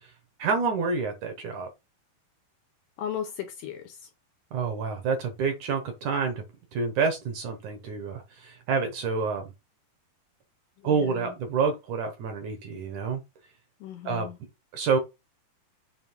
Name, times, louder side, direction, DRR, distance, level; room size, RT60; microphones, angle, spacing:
voice 1, 0.4-1.7 4.5-6.4 6.7-9.5 10.8-13.2 14.1-14.3 14.7-15.0, right 5 dB, 65° right, 2.1 m, -28 dB
voice 2, 3.0-4.0 10.8-11.3 13.8-14.4, left 9 dB, 85° left, 2.0 m, -36 dB
7.4 x 3.0 x 4.5 m
omnidirectional pair, 4.5 m